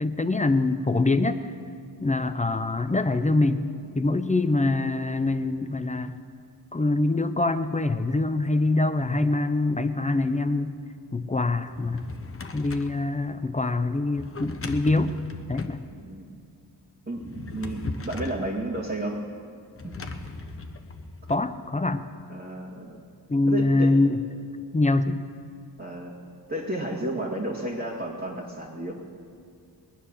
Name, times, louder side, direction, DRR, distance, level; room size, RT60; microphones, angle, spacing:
voice 1, 0.0-1.5 2.0-3.6 3.9-6.2 6.7-10.8 11.1-12.1 12.5-15.1 15.5-15.8 21.3-22.1 23.3-24.2 24.7-25.2, left 2 dB, 20° left, 10 dB, 0.6 m, -24 dB
Drawer open or close, 11.7-13.0 14.1-15.8 17.1-18.5 19.8-21.4, left 3 dB, 35° left, 1.1 m, -37 dB
voice 2, 15.9-16.4 17.1-19.2 19.8-20.1 22.3-23.0 23.5-23.9 25.8-26.2 26.5-29.0, right 1 dB, 30° right, -7 dB, 2.2 m, -32 dB
21.0 x 9.8 x 6.4 m, 2.3 s
wide cardioid pair, 105°, 41 cm